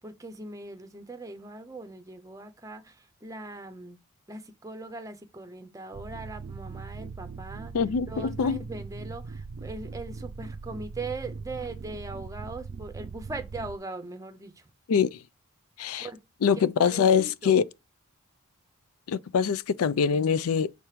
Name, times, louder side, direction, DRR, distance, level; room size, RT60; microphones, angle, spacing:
voice 1, 0.0-4.0 4.3-7.7 8.1-14.7 16.0-16.2 16.6-17.6, right 2 dB, 15° right, 0.7 m, -40 dB
sound 1, 5.9-13.8, right 5 dB, 50° right, 0.3 m, -40 dB
voice 2, 7.7-8.6 14.9-15.2 15.8-16.1 16.4-17.6 19.1-20.7, left 6 dB, 75° left, 0.4 m, -24 dB
6.6 x 3.0 x 4.9 m
head